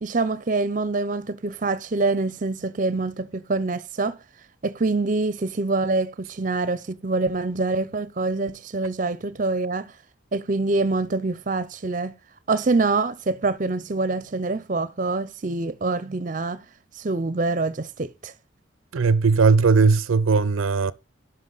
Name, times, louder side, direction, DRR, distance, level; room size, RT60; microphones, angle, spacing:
voice 1, 0.0-4.2 4.6-9.9 10.3-12.1 12.5-16.6 17.0-18.3, right 3 dB, 40° right, 0.6 m, -25 dB
voice 2, 18.9-20.9, right 4 dB, 85° right, 0.5 m, -18 dB
11.0 x 5.6 x 3.9 m
head